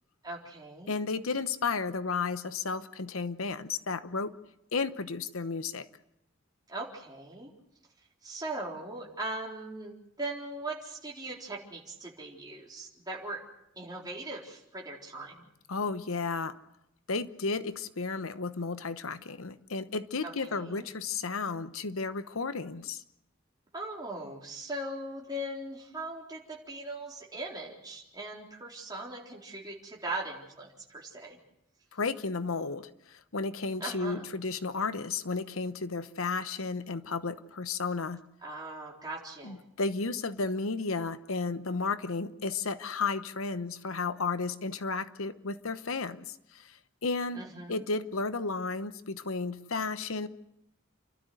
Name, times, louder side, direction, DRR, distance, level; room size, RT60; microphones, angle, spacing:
voice 1, 0.2-0.9 6.7-7.5 8.2-13.4 13.8-15.5 20.2-20.9 23.7-31.4 33.8-34.3 38.4-39.6 47.3-47.8, right 2 dB, 20° right, -2 dB, 4.0 m, -40 dB
voice 2, 0.9-4.3 4.7-5.9 15.7-16.5 17.1-23.0 31.9-38.2 39.4-50.3, left 4 dB, 85° left, 13 dB, 1.0 m, -33 dB
29.5 x 12.5 x 8.0 m, 0.81 s
head